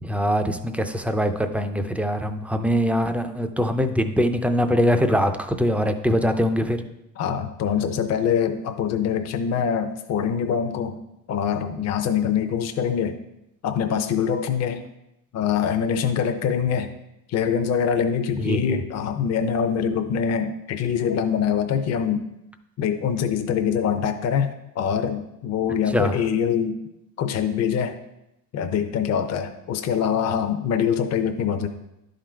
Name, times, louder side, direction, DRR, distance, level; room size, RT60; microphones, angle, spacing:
voice 1, 0.0-6.9 18.4-18.8 25.9-26.1, equal, 5° right, 7 dB, 0.4 m, -23 dB
voice 2, 7.2-11.0 11.3-13.2 13.6-14.8 15.3-17.0 17.3-22.3 22.8-26.8 27.2-28.0 28.5-31.7, left 7 dB, 50° left, 7 dB, 0.6 m, -24 dB
11.0 x 3.9 x 4.4 m, 0.88 s
cardioid pair, 125°, 35 cm